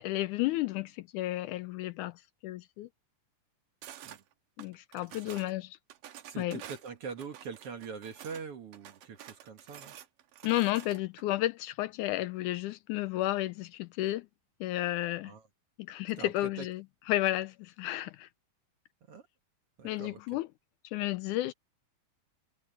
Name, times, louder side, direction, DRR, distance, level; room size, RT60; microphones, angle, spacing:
voice 1, 0.0-2.1 2.4-2.9 4.6-5.8 6.4-6.6 10.4-14.3 14.6-15.3 15.8-18.3 19.8-20.5 20.9-21.5, left 16 dB, 80° left, 2.0 m, -32 dB
sound 1, 3.8-4.2 4.6-5.5 5.9-8.4 8.7-11.2, right 11 dB, 85° right, 2.9 m, -49 dB
voice 2, 6.2-10.0 15.2-15.5 16.2-16.7 19.1-19.2 19.8-20.4, right 6 dB, 50° right, 2.2 m, -43 dB
omnidirectional pair, 3.8 m